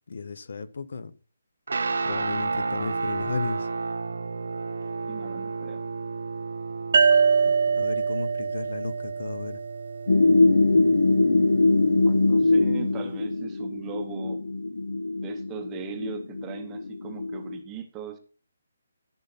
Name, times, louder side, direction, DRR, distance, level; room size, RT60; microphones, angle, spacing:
voice 1, 0.1-1.1 2.0-3.7 7.4-9.6, left 4 dB, 55° left, 0.8 m, -34 dB
Guitar, 1.7-13.1, right 4 dB, 65° right, 1.1 m, -33 dB
voice 2, 5.0-5.9 12.0-14.4 15.2-18.2, right 8 dB, 10° right, 0.8 m, -40 dB
sound 1, 6.9-10.4, right 6 dB, 40° right, 1.0 m, -24 dB
sound 2, 10.1-17.6, left 2 dB, 85° left, 0.9 m, -22 dB
13.5 x 5.6 x 4.1 m
hypercardioid pair, 180°, 0 cm